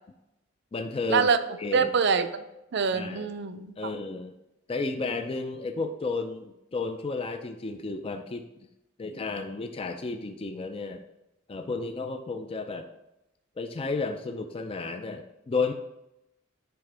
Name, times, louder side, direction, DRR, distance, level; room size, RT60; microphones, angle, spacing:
voice 1, 0.7-1.3 1.6-1.9 2.9-3.3 3.8-4.3 4.7-8.4 9.0-11.0 11.5-12.9 13.6-15.7, left 3 dB, 30° left, 6 dB, 0.4 m, -32 dB
voice 2, 1.7-2.4 2.7-3.9, right 5 dB, 60° right, 10 dB, 0.5 m, -25 dB
10.5 x 3.5 x 3.3 m, 0.91 s
head